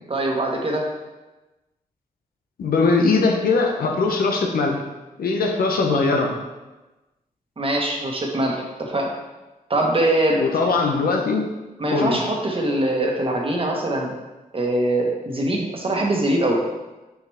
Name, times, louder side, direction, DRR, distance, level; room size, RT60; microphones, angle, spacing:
voice 1, 0.1-0.8 7.6-9.1 9.7-10.4 11.8-14.1 14.5-16.6, right 1 dB, 40° right, 0 dB, 1.3 m, -22 dB
voice 2, 2.6-4.8 5.2-6.3 10.4-11.6 11.9-12.2, left 3 dB, 85° left, 2 dB, 0.9 m, -20 dB
6.4 x 4.8 x 3.5 m, 1.1 s
cardioid pair, 70°, 15 cm